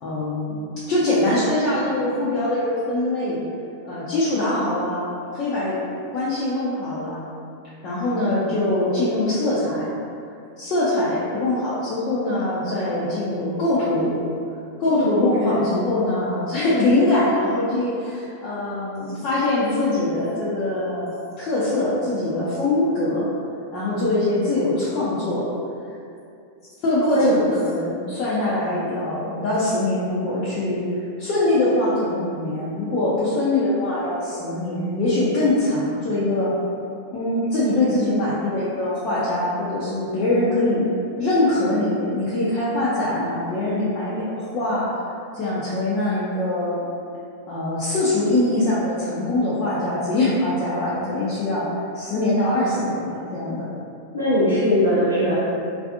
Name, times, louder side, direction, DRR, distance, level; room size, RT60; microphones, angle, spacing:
voice 1, 0.0-3.4 3.9-5.1 5.3-5.8 6.1-7.3 7.8-9.9 10.6-14.2 14.8-21.1 21.4-23.3 23.7-25.5 26.8-30.8 31.2-36.5 37.1-40.8 41.2-44.9 45.3-46.9 47.5-53.8, left 1 dB, 40° left, -10 dB, 0.5 m, -23 dB
voice 2, 14.9-15.9 27.1-27.4 54.1-55.5, equal, 80° left, -10 dB, 0.6 m, -21 dB
2.5 x 2.4 x 2.4 m, 2.5 s
figure-of-eight pair, 90°, 0 cm